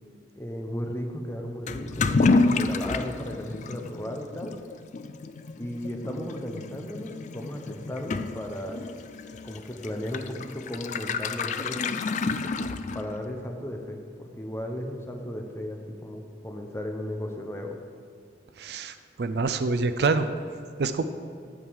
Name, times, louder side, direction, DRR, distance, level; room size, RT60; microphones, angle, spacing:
voice 1, 0.4-4.5 5.6-8.8 9.4-11.9 12.9-17.8, equal, 15° left, 3 dB, 0.8 m, -35 dB
Toilet flush / Liquid, 1.7-13.3, left 3 dB, 45° left, 0.3 m, -29 dB
voice 2, 18.6-20.3 20.8-21.0, right 4 dB, 65° right, 11 dB, 0.4 m, -26 dB
8.7 x 7.3 x 4.8 m, 2.4 s
head